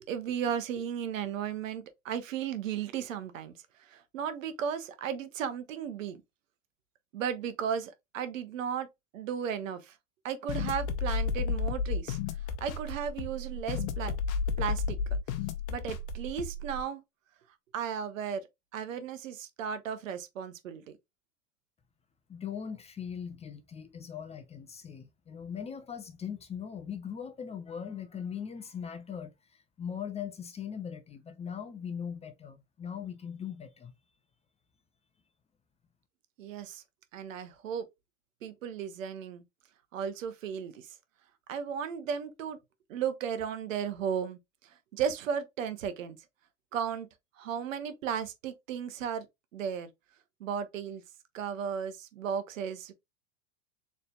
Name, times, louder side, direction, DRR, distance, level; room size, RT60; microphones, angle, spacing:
voice 1, 0.1-3.5 3.8-6.2 7.1-8.9 9.1-10.0 10.2-12.2 12.6-14.1 14.6-15.0 15.7-17.0 17.7-18.4 18.7-20.8 36.4-36.8 37.1-37.8 38.4-39.4 39.9-40.9 41.5-42.6 42.9-46.2 46.7-47.1 47.4-49.3 49.5-49.9 50.4-51.0 51.3-52.9, right 8 dB, 80° right, 1.0 m, -35 dB
sound 1, 10.5-16.8, left 5 dB, 55° left, 0.8 m, -32 dB
voice 2, 22.3-33.9, left 7 dB, 15° left, 0.5 m, -40 dB
4.1 x 3.3 x 2.4 m
hypercardioid pair, 105°, 38 cm